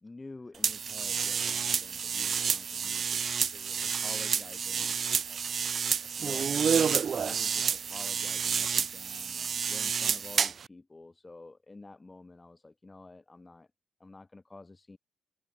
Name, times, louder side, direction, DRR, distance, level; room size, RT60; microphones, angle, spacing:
voice 1, 0.0-3.3 4.0-5.0 6.2-13.7 14.0-15.0, left 3 dB, 20° left, 1.1 m, -50 dB
sound 1, 0.6-10.7, right 6 dB, 50° right, 0.5 m, -29 dB
voice 2, 3.5-6.3, right 1 dB, 5° right, 7.1 m, -61 dB
cardioid pair, 90°, 0 cm